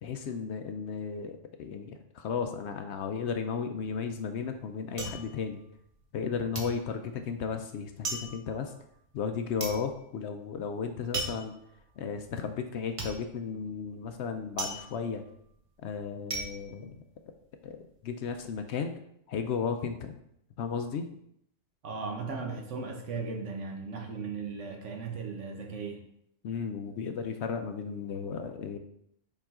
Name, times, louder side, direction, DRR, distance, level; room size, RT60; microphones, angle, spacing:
voice 1, 0.0-5.6 6.1-8.7 9.1-11.5 12.0-15.2 15.8-17.0 17.6-17.8 18.0-18.9 19.3-20.2 20.6-21.1 26.4-28.8, left 6 dB, 65° left, 7 dB, 0.8 m, -34 dB
sound 1, 3.9-6.2 6.5-17.7 18.0-18.6, right 2 dB, 30° right, 0.9 m, -39 dB
voice 2, 21.8-26.0, right 4 dB, 70° right, 2 dB, 1.3 m, -37 dB
5.4 x 5.0 x 3.6 m, 0.73 s
omnidirectional pair, 1.3 m